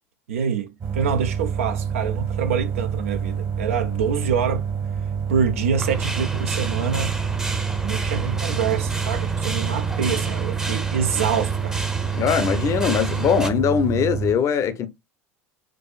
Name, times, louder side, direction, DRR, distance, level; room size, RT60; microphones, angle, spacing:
voice 1, 0.3-4.7 5.3-7.2 7.8-11.8, right 7 dB, 75° right, 0.5 m, -26 dB
sound 1, 0.8-14.3, right 7 dB, 40° right, 1.1 m, -27 dB
sound 2, 5.8-13.5, right 2 dB, 10° right, 0.6 m, -31 dB
voice 2, 12.1-14.9, left 7 dB, 45° left, 0.6 m, -21 dB
4.6 x 2.4 x 2.4 m
hypercardioid pair, 70°, 7 cm